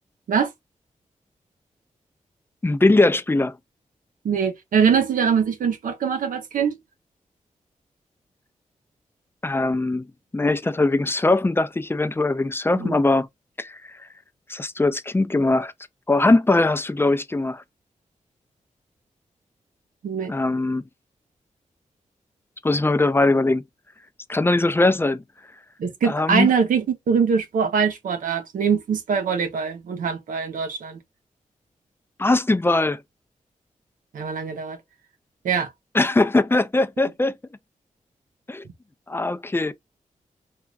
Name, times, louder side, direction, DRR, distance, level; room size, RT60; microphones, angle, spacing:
voice 1, 2.6-3.6 9.4-10.1 10.3-13.3 13.6-13.8 14.5-15.7 16.1-17.6 20.3-20.8 22.6-23.6 24.3-25.2 26.0-26.5 32.2-33.0 35.9-37.3 38.5-38.6 39.1-39.7, left 2 dB, 15° left, 0.4 m, -20 dB
voice 2, 4.2-6.8 12.7-13.0 20.0-20.3 25.8-31.0 34.1-34.8 35.4-35.7, right 6 dB, 90° right, 0.6 m, -23 dB
3.0 x 2.3 x 2.3 m
cardioid pair, 60°, 14 cm